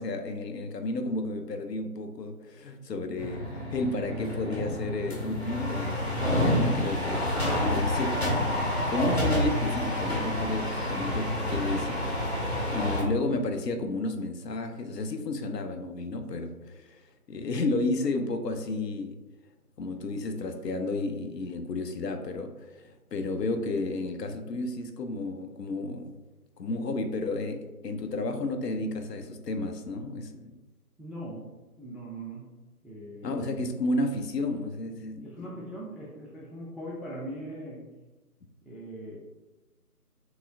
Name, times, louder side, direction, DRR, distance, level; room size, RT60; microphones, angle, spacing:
voice 1, 0.0-8.3 8.6-19.2 19.8-26.1 26.6-30.5 33.2-35.5, left 2 dB, 90° left, 6 dB, 0.6 m, -32 dB
sound 1, 3.2-13.0, left 1 dB, 40° left, 0.7 m, -28 dB
voice 2, 31.0-31.5 31.8-32.5 32.8-33.6 35.2-37.8 38.6-39.2, right 1 dB, ahead, -5 dB, 0.3 m, -40 dB
3.0 x 2.9 x 2.4 m, 1.1 s
figure-of-eight pair, 165°, 47 cm